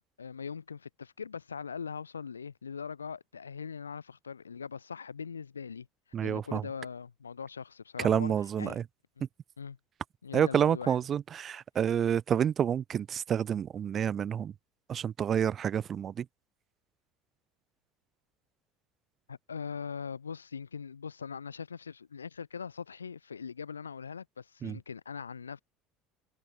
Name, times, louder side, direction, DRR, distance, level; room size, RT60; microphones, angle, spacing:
voice 1, 0.2-5.9 6.2-8.8 9.2-9.3 9.6-9.8 10.2-11.0 19.3-25.6, left 6 dB, 80° left, 3.2 m, -41 dB
voice 2, 6.1-6.6 8.0-8.8 10.3-14.5 14.9-16.2 24.6-24.8, right 8 dB, 35° right, 1.4 m, -29 dB
figure-of-eight pair, 65°, 0 cm